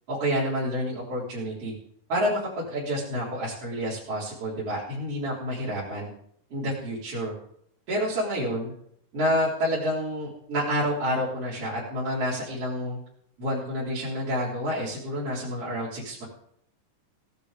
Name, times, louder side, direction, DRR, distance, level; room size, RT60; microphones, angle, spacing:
voice 1, 0.1-1.7 2.1-6.1 6.5-7.3 7.9-8.7 9.1-13.0 13.4-16.2, equal, 45° right, -9 dB, 4.8 m, -29 dB
17.5 x 11.0 x 5.2 m, 0.69 s
omnidirectional pair, 4.0 m